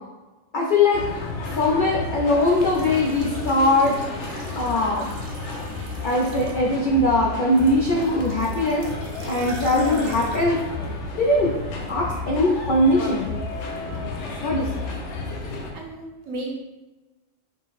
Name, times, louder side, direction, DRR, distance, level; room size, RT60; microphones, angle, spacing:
voice 1, 0.5-1.0 1.6-4.0 4.6-5.1 6.0-8.9 9.3-10.6 11.1-11.6 11.9-13.4 14.4-14.7, left 1 dB, 80° left, -2 dB, 0.4 m, -21 dB
sound 1, 0.9-15.7, left 3 dB, 65° left, 0.9 m, -32 dB
sound 2, 2.4-6.9 7.6-10.4, right 2 dB, 50° right, 0.8 m, -40 dB
voice 2, 15.3-16.5, right 1 dB, 70° right, -1 dB, 1.2 m, -36 dB
4.9 x 2.0 x 3.9 m, 1.1 s
omnidirectional pair, 1.5 m